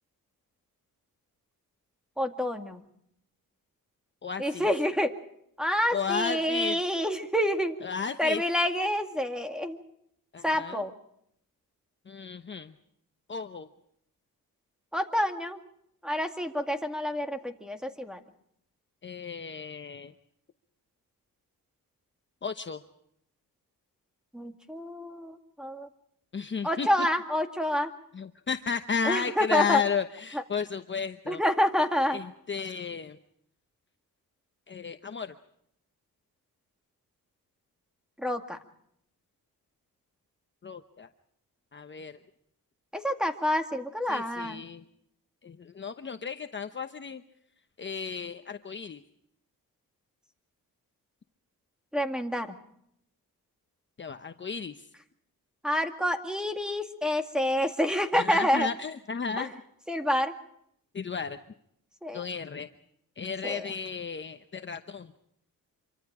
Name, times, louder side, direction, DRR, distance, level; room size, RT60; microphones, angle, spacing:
voice 1, 2.2-2.8 4.4-5.1 5.6-7.8 8.2-9.8 10.4-10.9 14.9-15.6 16.0-18.2 24.3-25.9 26.6-27.9 29.0-29.8 30.3-30.4 31.3-32.2 38.2-38.6 42.9-44.6 51.9-52.5 55.6-58.7 59.4-59.5 59.9-60.3 62.0-62.2 63.4-63.7, equal, ahead, 6 dB, 2.1 m, -28 dB
voice 2, 4.2-4.7 5.9-6.8 7.8-8.4 10.3-10.8 12.1-12.7 13.3-13.7 19.0-20.1 22.4-22.8 26.3-26.9 28.1-31.4 32.1-33.2 34.7-35.4 40.6-41.1 41.7-42.2 44.1-44.8 45.4-47.2 47.8-49.0 54.0-54.7 58.1-59.5 60.9-61.4 62.1-62.7 63.2-65.1, left 6 dB, 30° left, 7 dB, 1.0 m, -33 dB
26.5 x 24.0 x 4.9 m, 0.73 s
cardioid pair, 120°, 35 cm